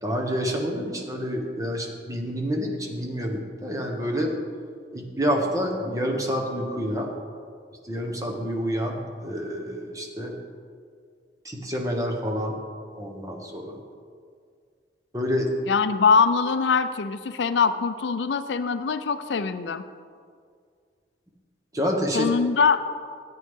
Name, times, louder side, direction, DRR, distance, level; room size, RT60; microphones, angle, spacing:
voice 1, 0.0-4.3 4.9-7.1 7.8-10.3 11.4-12.5 12.9-13.8 15.1-15.5 21.7-22.3, equal, 20° right, 1 dB, 1.2 m, -28 dB
voice 2, 15.7-19.8 22.1-22.8, left 5 dB, 80° left, 12 dB, 0.5 m, -22 dB
13.0 x 9.4 x 3.7 m, 2.1 s
head